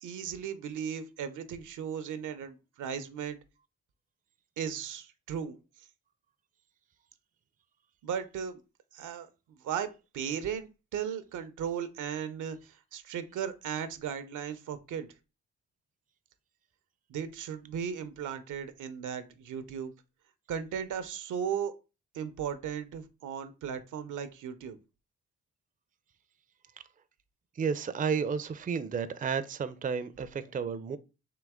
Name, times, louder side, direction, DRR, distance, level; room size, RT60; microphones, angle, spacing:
voice 1, 0.0-3.4 4.6-5.9 8.0-8.6 8.9-15.1 17.1-19.9 20.5-21.7 22.1-24.8, right 8 dB, 75° right, 0.6 m, -36 dB
voice 2, 27.6-31.0, right 6 dB, 25° right, 0.4 m, -32 dB
3.8 x 2.8 x 3.5 m
cardioid pair, 60°, 31 cm